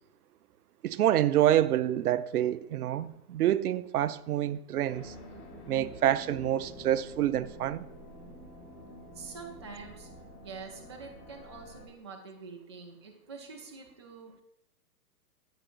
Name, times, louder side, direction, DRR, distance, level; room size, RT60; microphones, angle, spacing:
voice 1, 0.8-5.1 5.7-7.8, right 12 dB, 65° right, 0.5 m, -27 dB
sound 1, 4.9-11.9, equal, 25° left, 2.2 m, -48 dB
voice 2, 9.1-10.1 10.4-14.3, right 4 dB, 20° right, 0.4 m, -46 dB
11.5 x 9.0 x 2.5 m
hypercardioid pair, 140°, 48 cm